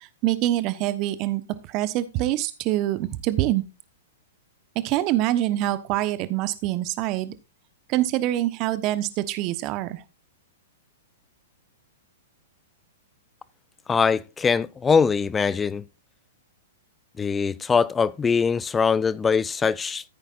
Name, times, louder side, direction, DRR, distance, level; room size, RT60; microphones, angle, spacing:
voice 1, 0.0-1.4 1.7-3.6 4.7-7.3 7.9-10.0, right 14 dB, 40° right, 1.1 m, -25 dB
voice 2, 13.9-15.8 17.2-20.0, left 5 dB, 15° left, 0.5 m, -22 dB
14.5 x 8.7 x 2.5 m
figure-of-eight pair, 110°, 0 cm